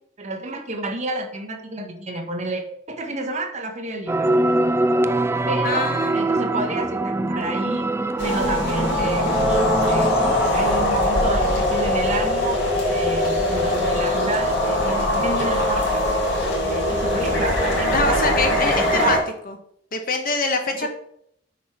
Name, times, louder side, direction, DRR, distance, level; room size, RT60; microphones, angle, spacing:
voice 1, 0.2-4.3 5.4-7.9 8.2-10.2 10.5-16.1 16.6-19.2 20.7-20.9, right 2 dB, 40° right, 4 dB, 1.4 m, -30 dB
sound 1, 4.1-10.5, right 1 dB, 15° right, 0.3 m, -23 dB
voice 2, 5.6-6.2 17.9-19.2 19.4-19.6 19.9-20.9, left 3 dB, 50° left, 5 dB, 1.4 m, -24 dB
sound 2, 8.2-19.2, left 1 dB, 80° left, 3.9 m, -21 dB
8.3 x 4.9 x 5.9 m, 0.69 s
head